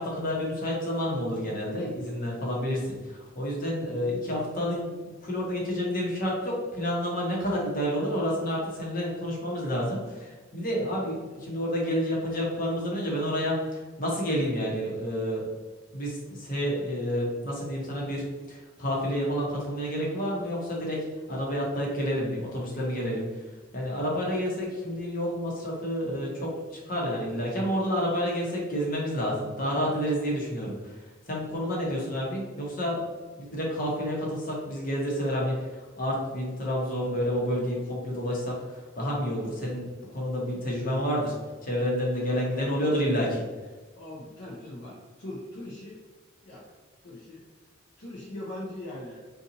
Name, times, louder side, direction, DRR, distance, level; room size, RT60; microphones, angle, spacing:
voice 1, 0.0-4.9 5.2-15.4 15.9-21.0 21.3-23.2 23.7-30.7 31.3-33.0 33.4-35.5 35.9-38.6 38.9-41.3 41.6-43.4, equal, 45° left, -3 dB, 1.0 m, -29 dB
voice 2, 42.3-42.7 44.0-46.0 46.4-46.7 47.0-47.4 48.0-49.2, left 1 dB, 65° left, -5 dB, 0.6 m, -40 dB
2.8 x 2.5 x 3.8 m, 1.3 s
head